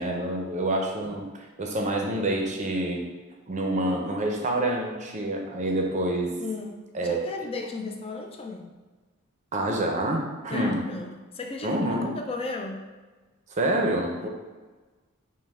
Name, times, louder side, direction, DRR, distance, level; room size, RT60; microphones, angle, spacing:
voice 1, 0.0-3.0 3.5-6.4 6.9-7.3 9.5-10.8 11.6-12.1 13.5-14.3, right 1 dB, 35° right, 1 dB, 0.6 m, -27 dB
voice 2, 6.4-8.8 10.5-12.8 14.2-14.3, left 3 dB, 25° left, 3 dB, 0.4 m, -35 dB
5.3 x 2.2 x 3.4 m, 1.3 s
head